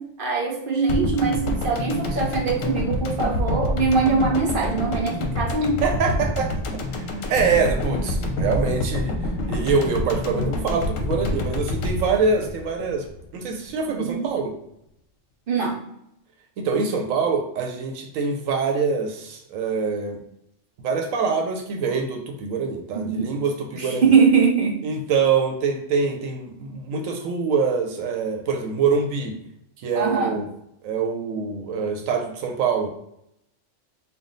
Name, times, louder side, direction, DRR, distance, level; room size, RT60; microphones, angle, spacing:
voice 1, 0.0-5.8 13.9-14.3 15.5-15.8 23.0-23.3 23.7-24.8 30.0-30.4, right 5 dB, 60° right, 1 dB, 0.6 m, -22 dB
sound 1, 0.9-13.2 13.5-13.6, left 1 dB, 80° left, 1.0 m, -27 dB
voice 2, 5.8-6.5 6.9-9.1 9.5-13.0 13.3-14.5 16.6-20.2 20.8-24.1 24.8-29.3 29.8-30.5 30.8-32.9, right 5 dB, 90° right, 3 dB, 1.0 m, -24 dB
3.5 x 2.2 x 3.7 m, 0.77 s
omnidirectional pair, 1.3 m